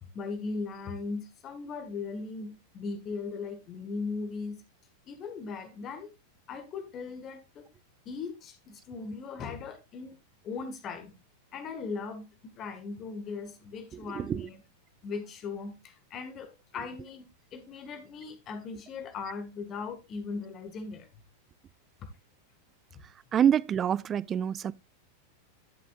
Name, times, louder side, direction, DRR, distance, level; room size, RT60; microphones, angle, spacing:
voice 1, 0.0-4.6 5.1-6.1 6.5-7.7 8.1-10.1 10.4-11.1 11.5-14.6 15.0-21.1, left 4 dB, 30° left, 1.8 m, -38 dB
voice 2, 14.0-14.5 23.3-24.7, right 9 dB, 25° right, 0.4 m, -26 dB
11.5 x 7.7 x 2.5 m
figure-of-eight pair, 90°, 0 cm